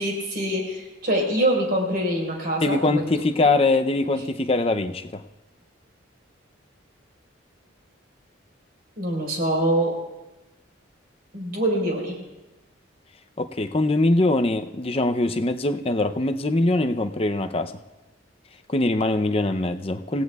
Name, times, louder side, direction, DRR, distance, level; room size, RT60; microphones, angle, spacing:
voice 1, 0.0-3.0 9.0-9.9 11.3-12.2, right 1 dB, 50° right, -1 dB, 4.5 m, -24 dB
voice 2, 2.6-5.2 13.4-17.7 18.7-20.2, left 2 dB, 30° left, 7 dB, 0.6 m, -22 dB
28.0 x 17.0 x 2.4 m, 1.1 s
head